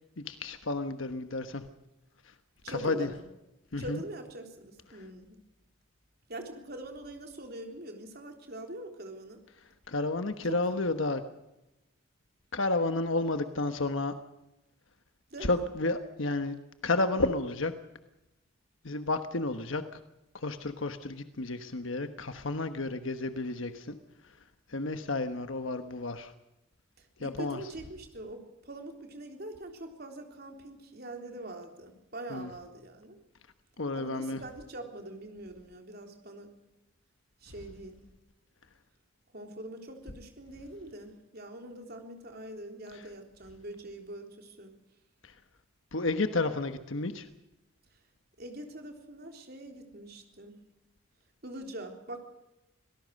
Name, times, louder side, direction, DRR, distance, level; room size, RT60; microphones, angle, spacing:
voice 1, 0.2-1.6 2.7-3.1 3.7-4.0 9.9-11.2 12.5-14.1 15.4-16.6 16.8-17.7 18.8-20.0 20.3-23.9 24.7-26.3 27.2-27.6 32.3-32.5 33.8-34.4 45.2-45.3 45.9-47.3, left 2 dB, 70° left, 8 dB, 1.2 m, -31 dB
voice 2, 2.6-3.2 3.8-5.4 6.3-9.4 15.3-15.6 27.0-33.2 33.9-36.5 37.4-38.0 39.3-44.7 47.9-48.0 48.4-50.6 51.4-52.2, right 1 dB, 50° right, 3 dB, 3.7 m, -43 dB
25.5 x 18.0 x 6.5 m, 0.93 s
head